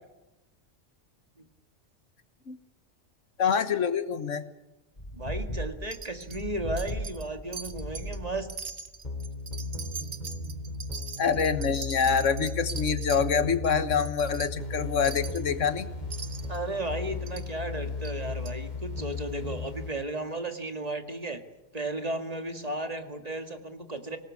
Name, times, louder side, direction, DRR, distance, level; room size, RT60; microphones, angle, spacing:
voice 1, 3.4-4.5 11.2-15.9, left 6 dB, 85° left, 12 dB, 1.6 m, -26 dB
sound 1, 5.0-19.9, left 3 dB, 35° left, 3.0 m, -36 dB
voice 2, 5.1-8.5 16.5-21.4 21.7-24.2, right 1 dB, 30° right, 7 dB, 2.0 m, -34 dB
Wind chime, 5.9-6.4 6.8-7.3 7.5-8.2 8.5-13.2 13.6-13.7 14.0-14.5 15.0-15.4 16.1-16.6 17.3-17.5 18.0-18.1 18.5-18.6, right 5 dB, 65° right, 1.6 m, -41 dB
24.5 x 19.0 x 8.5 m, 0.96 s
omnidirectional pair, 1.2 m